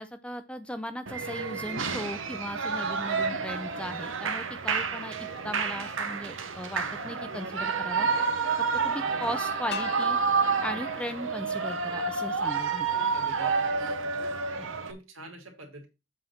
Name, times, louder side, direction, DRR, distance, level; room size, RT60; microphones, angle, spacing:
voice 1, 0.0-8.1 8.8-10.2 10.6-13.0 14.6-14.7, equal, 5° left, 10 dB, 0.6 m, -37 dB
Shout / Cheering, 1.1-14.9, right 5 dB, 75° right, 1.0 m, -29 dB
sound 1, 9.7-12.6, left 7 dB, 50° left, 0.7 m, -42 dB
voice 2, 13.1-13.8 14.8-15.9, right 2 dB, 90° right, 3 dB, 2.6 m, -46 dB
7.8 x 3.9 x 5.8 m, 0.27 s
head